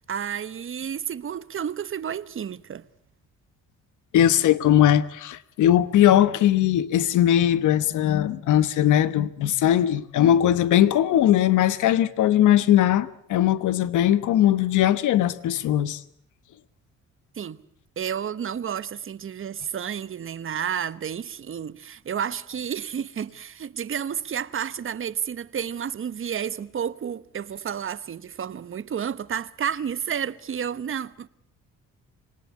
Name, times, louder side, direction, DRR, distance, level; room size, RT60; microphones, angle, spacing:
voice 1, 0.0-2.9 17.3-17.6 18.0-31.3, right 8 dB, 45° right, 1.1 m, -31 dB
voice 2, 4.1-16.0, left 11 dB, 80° left, 1.2 m, -20 dB
26.5 x 19.0 x 8.4 m
cardioid pair, 90°, 30 cm